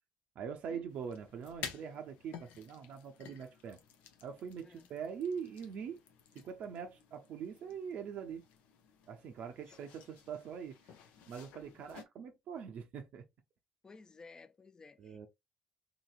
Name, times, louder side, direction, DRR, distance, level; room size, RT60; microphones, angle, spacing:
voice 1, 0.4-3.8 4.2-6.0 6.3-8.5 9.1-10.9 11.3-13.2 15.0-15.3, right 7 dB, 65° right, 0.5 m, -43 dB
sound 1, 0.9-12.0, left 8 dB, 75° left, 0.6 m, -53 dB
voice 2, 13.8-15.3, left 4 dB, 30° left, 0.5 m, -56 dB
2.8 x 2.8 x 2.4 m
hypercardioid pair, 60°, 2 cm